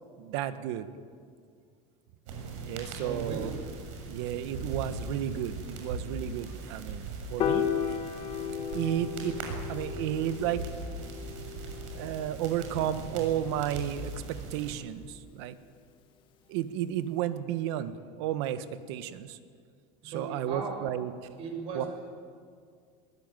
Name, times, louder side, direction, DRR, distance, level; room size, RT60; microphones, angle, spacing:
voice 1, 0.2-0.9 2.6-3.5 4.1-7.7 8.7-9.4 9.7-10.6 11.9-15.6 16.5-19.4 20.0-21.3 21.7-21.9, right 11 dB, 60° right, 11 dB, 1.5 m, -33 dB
sound 1, 2.3-14.7, right 3 dB, 85° right, 7.0 m, -40 dB
voice 2, 3.0-3.6 20.0-20.9 21.4-21.9, right 4 dB, 40° right, 3 dB, 6.1 m, -37 dB
Piano, 7.4-13.7, left 8 dB, 30° left, 1.6 m, -35 dB
22.0 x 21.0 x 9.2 m, 2.1 s
cardioid pair, 175°, 16 cm